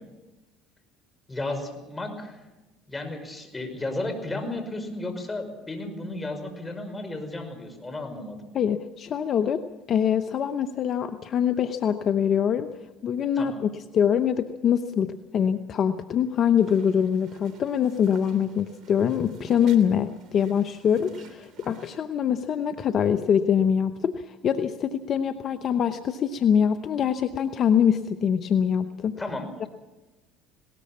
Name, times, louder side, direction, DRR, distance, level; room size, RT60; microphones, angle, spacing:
voice 1, 1.3-2.4 2.9-8.5 13.4-13.7 29.2-29.5, left 2 dB, 15° left, 6 dB, 5.4 m, -33 dB
voice 2, 8.5-9.6 9.9-12.7 13.0-29.2 29.6-29.7, left 8 dB, 50° left, 9 dB, 0.9 m, -24 dB
sound 1, 16.2-22.0, right 4 dB, 50° right, 3.0 m, -49 dB
19.5 x 18.5 x 7.3 m, 1.1 s
hypercardioid pair, 75°, 0 cm